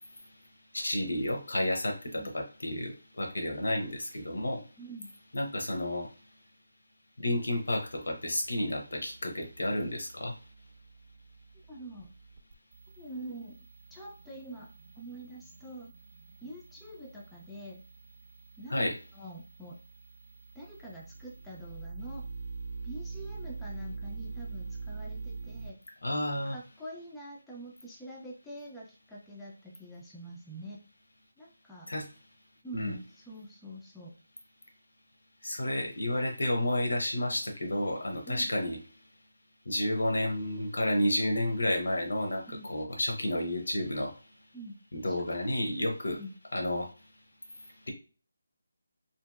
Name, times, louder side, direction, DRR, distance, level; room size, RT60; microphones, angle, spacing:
voice 1, 0.7-4.6 5.3-6.1 7.2-10.4 18.7-18.9 26.0-26.6 31.9-32.1 32.7-32.9 35.4-38.8 39.6-44.2 44.9-46.2 46.5-46.9 47.6-47.9, left 1 dB, 75° left, 2 dB, 0.8 m, -31 dB
voice 2, 4.8-5.1 11.7-12.1 13.0-13.6 13.9-15.9 16.4-17.8 18.6-18.8 19.1-19.8 20.5-22.2 22.8-25.8 26.5-30.8 31.4-31.9 32.6-34.1 38.3-38.5 42.5-42.7 44.5-44.8 45.1-45.2 46.2-46.3, right 1 dB, 5° left, -4 dB, 0.4 m, -45 dB
sound 1, 7.8-25.7, right 4 dB, 55° right, 0.6 m, -45 dB
2.7 x 2.7 x 2.3 m, 0.36 s
figure-of-eight pair, 160°, 0 cm